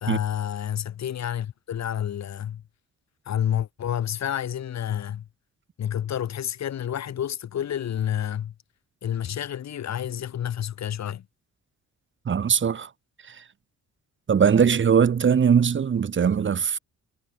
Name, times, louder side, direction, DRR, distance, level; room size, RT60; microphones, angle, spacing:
voice 1, 0.0-2.6 3.2-5.3 5.8-8.5 9.0-11.3, left 10 dB, 60° left, 3.3 m, -29 dB
voice 2, 12.2-12.9 13.3-13.4 14.3-16.8, right 7 dB, 40° right, 1.4 m, -20 dB
cardioid pair, 90°, 30 cm